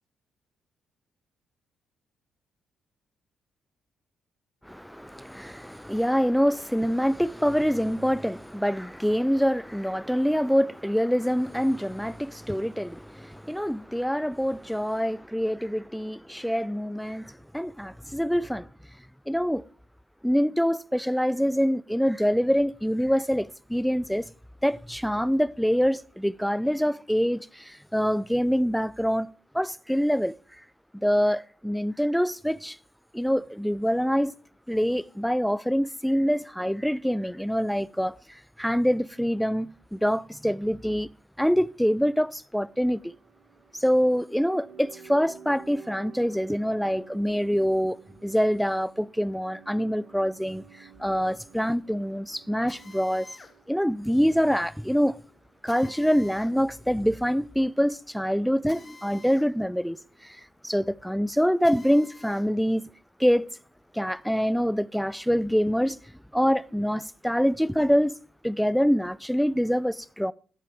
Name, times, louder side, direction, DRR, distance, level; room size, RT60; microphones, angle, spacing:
voice 1, 4.6-18.7 19.3-19.6 20.2-24.3 24.6-29.3 29.5-30.3 30.9-32.8 33.1-34.3 34.7-41.1 41.4-43.1 43.7-53.3 53.7-55.2 55.6-60.0 60.2-62.8 63.2-63.5 63.9-66.0 66.3-68.1 68.4-70.3, equal, ahead, 0.4 m, -25 dB
sound 1, 42.7-56.7 57.0-57.1, right 7 dB, 70° right, 1.8 m, -52 dB
Drill, 52.7-62.5 63.0-64.6, left 3 dB, 30° left, 1.6 m, -52 dB
14.5 x 8.8 x 3.4 m
cardioid pair, 90°, 0 cm